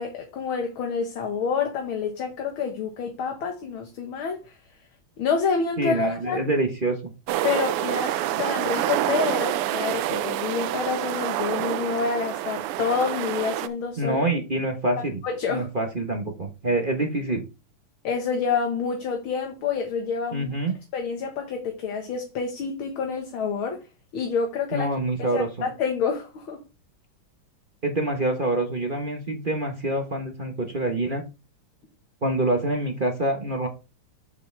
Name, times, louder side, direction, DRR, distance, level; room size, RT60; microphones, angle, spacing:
voice 1, 0.0-4.6 5.2-6.4 7.4-14.2 15.2-15.7 18.0-20.5 20.9-23.8 24.1-24.9 25.2-26.6, left 5 dB, 70° left, 2.2 m, -28 dB
voice 2, 5.8-7.0 14.0-15.2 15.5-17.5 20.3-20.7 24.7-25.5 27.8-31.2 32.2-33.7, right 2 dB, 30° right, 1.1 m, -26 dB
sound 1, 7.3-13.7, right 13 dB, 90° right, 1.6 m, -27 dB
7.8 x 7.3 x 3.4 m
omnidirectional pair, 2.4 m